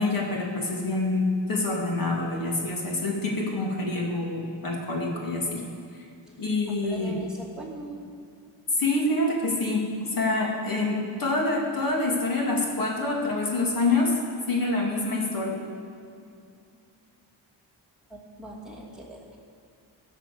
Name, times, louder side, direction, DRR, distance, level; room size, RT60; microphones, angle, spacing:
voice 1, 0.0-5.6 6.4-7.1 8.8-14.1 14.5-15.6, left 2 dB, 50° left, -2 dB, 2.5 m, -26 dB
voice 2, 6.7-8.0 18.1-19.4, right 2 dB, ahead, -5 dB, 2.5 m, -41 dB
16.0 x 6.1 x 7.0 m, 2.4 s
wide cardioid pair, 135°, 44 cm